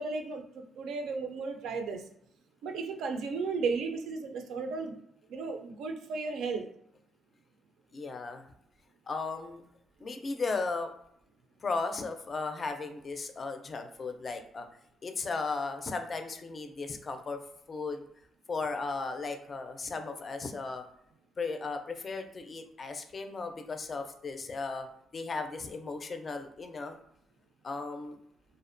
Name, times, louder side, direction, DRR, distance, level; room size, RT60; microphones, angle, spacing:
voice 1, 0.0-2.0 2.6-5.0 5.3-6.6, right 4 dB, 80° right, 5 dB, 0.4 m, -34 dB
voice 2, 7.9-8.4 9.1-9.6 10.0-10.9 11.6-14.7 15.0-17.4 17.7-18.0 18.5-20.9 21.4-24.9 25.1-27.0 27.6-28.2, left 4 dB, 40° left, 6 dB, 0.4 m, -36 dB
2.5 x 2.1 x 2.5 m, 0.72 s
cardioid pair, 90°, 0 cm